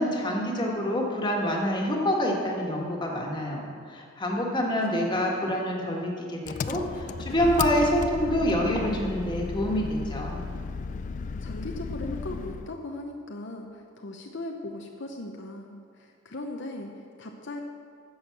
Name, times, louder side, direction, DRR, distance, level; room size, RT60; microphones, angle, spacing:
voice 1, 0.0-10.4, equal, 25° left, -1 dB, 1.7 m, -27 dB
voice 2, 4.9-5.3 11.4-17.6, left 2 dB, 60° left, 2 dB, 0.8 m, -38 dB
Engine, 6.4-12.7, left 4 dB, 40° left, 0.4 m, -34 dB
10.5 x 7.2 x 7.3 m, 2.2 s
head